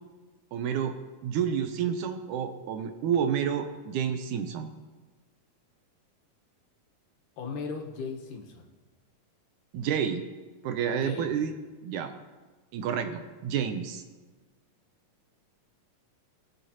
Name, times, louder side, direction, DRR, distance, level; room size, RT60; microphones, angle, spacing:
voice 1, 0.5-1.0 1.2-4.7 9.7-10.2 10.6-11.5 11.8-12.1 12.7-14.0, right 8 dB, 80° right, 7 dB, 2.1 m, -29 dB
voice 2, 7.4-8.7 10.9-11.4, left 4 dB, 75° left, 1 dB, 2.8 m, -37 dB
21.5 x 8.3 x 2.9 m, 1.3 s
omnidirectional pair, 3.8 m